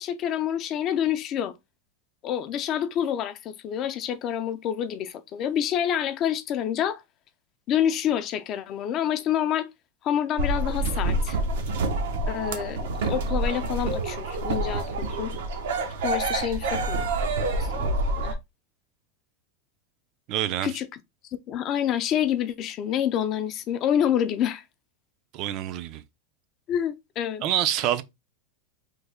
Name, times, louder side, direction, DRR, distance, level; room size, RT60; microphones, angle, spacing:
voice 1, 0.0-1.5 2.2-7.0 7.7-9.7 10.0-11.4 12.3-15.3 16.0-18.4 20.6-20.9 21.5-24.6 26.7-27.4, left 10 dB, 35° left, 0.3 m, -27 dB
sound 1, 10.4-18.3, right 2 dB, 80° right, 0.7 m, -27 dB
voice 2, 20.3-20.7 25.3-26.0 27.4-28.0, right 11 dB, 40° right, 0.4 m, -26 dB
3.2 x 2.1 x 3.4 m
supercardioid pair, 150°, 0 cm